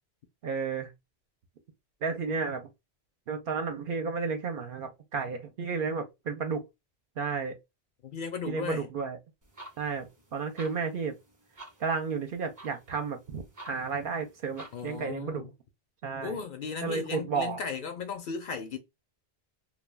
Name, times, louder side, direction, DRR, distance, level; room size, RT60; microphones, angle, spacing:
voice 1, 0.4-0.9 2.0-2.7 3.3-6.6 7.2-7.6 8.5-9.2 9.8-10.1 10.3-11.1 11.8-15.4 16.0-16.4 16.8-17.6, right 5 dB, 60° right, 0.7 m, -32 dB
voice 2, 8.0-8.9 14.7-15.5 16.2-18.8, left 5 dB, 60° left, 0.6 m, -36 dB
sound 1, 9.4-15.0, right 1 dB, 25° right, 0.5 m, -52 dB
2.2 x 2.1 x 3.2 m
omnidirectional pair, 1.1 m